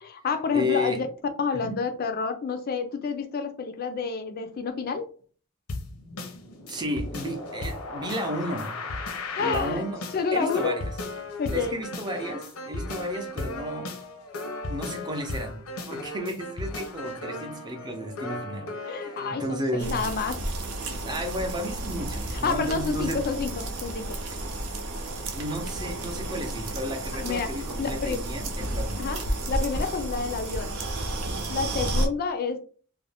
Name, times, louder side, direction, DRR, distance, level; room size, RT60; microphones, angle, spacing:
voice 1, 0.0-1.1 1.4-5.0 9.4-9.8 10.1-10.8 11.4-11.8 18.9-20.4 22.3-24.2 27.2-27.5 27.8-28.2 28.9-29.2 29.5-30.8 31.5-32.6, left 5 dB, 45° left, 0.4 m, -29 dB
voice 2, 0.5-1.0 1.5-1.7 6.7-8.8 9.4-10.0 10.3-10.9 11.5-13.9 14.7-20.0 21.0-23.2 25.3-29.0, equal, 20° right, 0.5 m, -33 dB
sound 1, 5.7-19.5, left 2 dB, 90° left, 0.6 m, -36 dB
sound 2, 19.8-32.1, right 1 dB, 80° right, 0.6 m, -32 dB
2.5 x 2.1 x 3.3 m
head